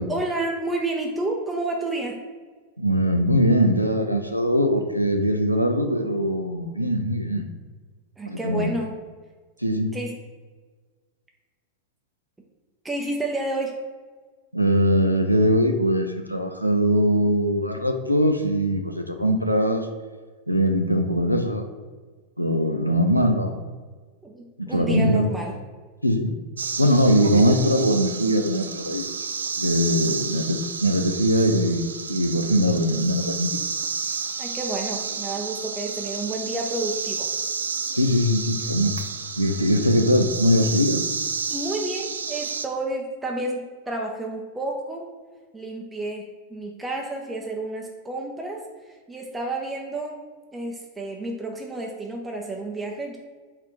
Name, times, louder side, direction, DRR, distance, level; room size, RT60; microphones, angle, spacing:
voice 1, 0.1-2.2 8.2-8.9 9.9-10.2 12.8-13.7 24.2-25.6 34.4-37.3 40.7-40.8 41.5-45.0 45.5-50.2 50.5-53.2, right 2 dB, 10° right, 0 dB, 0.5 m, -30 dB
voice 2, 2.8-7.4 8.3-8.7 9.6-9.9 14.5-19.9 20.5-21.6 22.4-23.6 24.6-25.3 26.0-26.3 26.8-29.1 29.6-31.8 32.1-33.6 38.0-39.0 39.4-41.0, equal, 90° left, 5 dB, 0.3 m, -21 dB
sound 1, 26.6-42.7, right 5 dB, 70° right, 0.3 m, -31 dB
4.2 x 2.4 x 4.7 m, 1.4 s
figure-of-eight pair, 90°, 0 cm